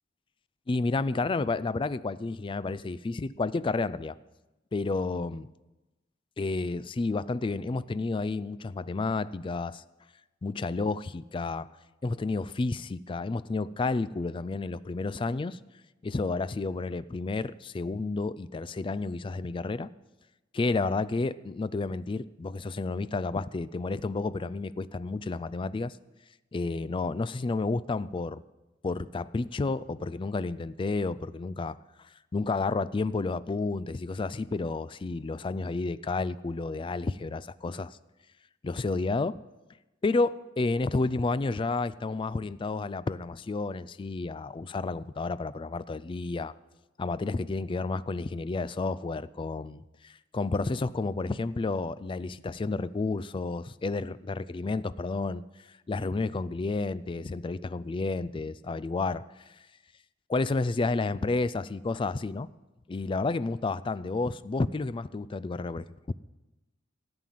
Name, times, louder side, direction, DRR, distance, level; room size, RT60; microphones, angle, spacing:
voice 1, 0.7-4.2 4.7-5.5 6.4-9.8 10.4-11.7 12.0-15.6 16.0-19.9 20.5-25.9 26.5-28.4 28.8-31.8 32.3-38.0 38.6-39.4 40.0-46.5 47.0-55.4 55.9-59.2 60.3-62.5 62.9-66.1, left 3 dB, 25° left, 17 dB, 0.3 m, -31 dB
13.0 x 8.9 x 7.5 m, 1.1 s
head